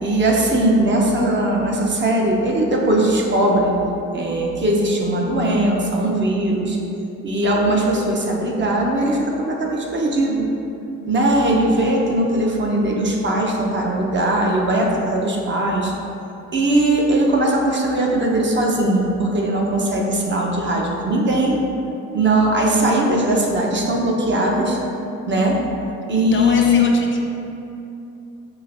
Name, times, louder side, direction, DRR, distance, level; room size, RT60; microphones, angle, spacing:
voice 1, 0.0-3.7 4.1-6.8 7.2-10.5 11.1-15.9 16.5-21.6 22.1-24.8 25.3-25.6 26.1-26.8, right 1 dB, 40° right, -1 dB, 0.7 m, -19 dB
voice 2, 26.1-27.2, left 3 dB, 40° left, 2 dB, 0.4 m, -28 dB
4.9 x 3.4 x 2.5 m, 2.8 s
cardioid pair, 90°, 30 cm